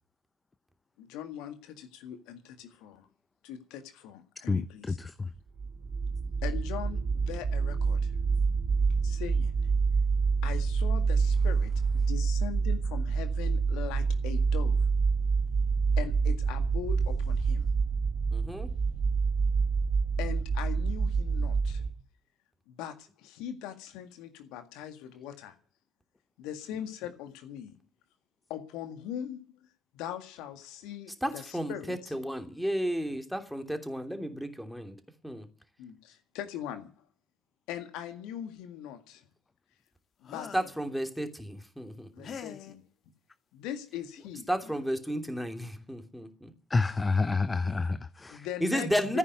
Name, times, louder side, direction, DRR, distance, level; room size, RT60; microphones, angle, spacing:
voice 1, 1.0-3.1 3.4-5.0 6.4-8.1 9.0-9.7 10.4-14.9 16.0-17.7 20.2-21.8 22.7-25.6 26.4-27.8 28.5-29.4 29.9-32.2 35.8-37.1 37.7-39.2 40.2-40.5 42.1-42.8 43.5-44.5 48.3-49.2, left 10 dB, 70° left, 1.8 m, -41 dB
voice 2, 4.5-5.3 46.7-48.5, left 3 dB, 25° left, 0.8 m, -29 dB
sound 1, 5.6-21.9, right 5 dB, 55° right, 1.6 m, -27 dB
voice 3, 18.3-18.7 31.2-35.0 35.2-35.5 40.5-42.3 44.5-46.5 48.6-49.2, equal, ahead, 3.0 m, -32 dB
sound 2, 40.2-40.8 42.2-42.8 44.2-44.3 44.6-44.9, left 7 dB, 50° left, 1.7 m, -44 dB
14.5 x 9.8 x 9.4 m
hypercardioid pair, 50°, 0 cm